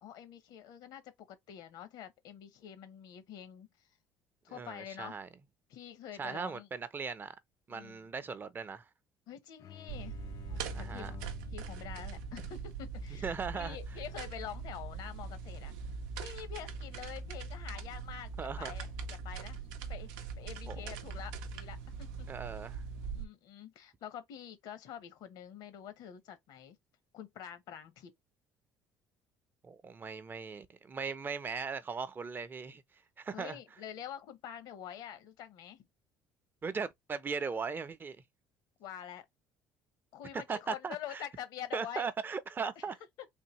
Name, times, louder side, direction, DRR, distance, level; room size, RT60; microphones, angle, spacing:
voice 1, 0.0-3.9 4.4-5.2 5.7-6.7 7.7-8.1 9.3-11.1 11.5-15.7 16.2-19.6 19.9-22.3 23.1-26.8 27.1-28.1 33.3-35.8 38.8-39.3 40.1-42.1, left 9 dB, 70° left, 0.9 m, -46 dB
voice 2, 4.5-5.3 6.2-7.4 7.7-8.8 10.7-11.1 13.2-13.8 18.4-18.7 20.7-20.8 22.3-22.8 29.6-32.8 33.2-33.6 36.6-38.2 40.3-41.2 41.7-42.9, right 5 dB, 30° right, 0.6 m, -38 dB
sound 1, 9.6-15.1, left 9 dB, 50° left, 0.4 m, -53 dB
sound 2, 9.9-23.2, right 5 dB, 90° right, 0.6 m, -42 dB
3.5 x 2.6 x 3.0 m
supercardioid pair, 95°, 7 cm